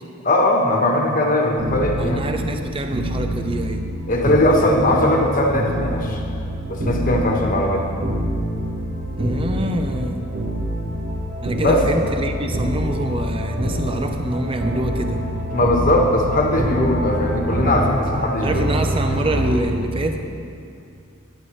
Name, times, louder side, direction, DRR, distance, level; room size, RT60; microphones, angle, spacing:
voice 1, 0.2-2.2 4.1-6.2 6.7-7.9 11.5-11.8 15.5-18.7 19.1-19.2, left 1 dB, 40° left, 0 dB, 1.3 m, -19 dB
sound 1, 1.6-19.6, equal, 50° right, 1.2 m, -26 dB
voice 2, 2.0-3.8 9.2-10.3 11.4-15.2 18.4-20.2, right 1 dB, 25° right, 5 dB, 0.6 m, -25 dB
14.5 x 11.0 x 3.2 m, 2.5 s
head